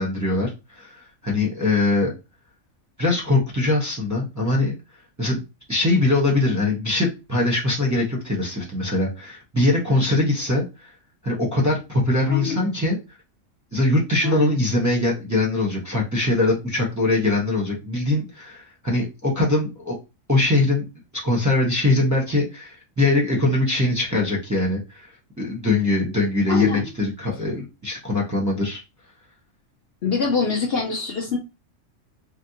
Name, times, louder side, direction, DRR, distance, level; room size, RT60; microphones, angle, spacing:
voice 1, 0.0-2.1 3.0-4.8 5.2-5.4 5.7-10.9 11.2-13.0 13.7-20.0 20.3-20.9 21.2-25.1 25.4-28.8, left 2 dB, 15° right, 0.7 m, -22 dB
voice 2, 12.3-12.7 14.2-14.6 26.5-26.9 30.0-31.4, left 5 dB, 60° left, 0.7 m, -24 dB
3.5 x 2.2 x 2.7 m
omnidirectional pair, 1.4 m